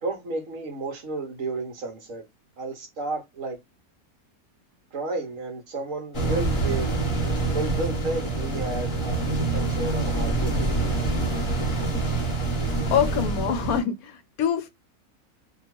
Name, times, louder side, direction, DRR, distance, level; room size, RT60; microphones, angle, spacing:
voice 1, 0.0-2.2 2.6-3.6 4.9-6.9 7.4-9.2 9.5-10.7, right 2 dB, 65° right, 1.2 m, -32 dB
sound 1, 6.1-13.8, right 3 dB, 25° left, 0.8 m, -26 dB
voice 2, 12.9-14.7, left 8 dB, 75° left, 1.1 m, -25 dB
3.0 x 2.2 x 2.9 m
omnidirectional pair, 1.6 m